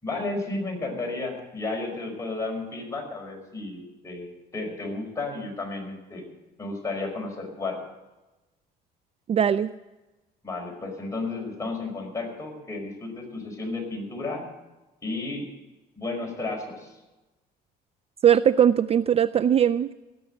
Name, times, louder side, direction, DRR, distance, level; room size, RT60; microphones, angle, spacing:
voice 1, 0.0-6.2 6.6-7.8 10.4-14.4 15.0-15.5 16.0-16.9, left 3 dB, 20° left, 0 dB, 5.3 m, -33 dB
voice 2, 9.3-9.7 18.2-19.9, right 9 dB, 35° right, 14 dB, 0.4 m, -20 dB
18.0 x 6.9 x 9.3 m, 1.1 s
cardioid pair, 110°, 17 cm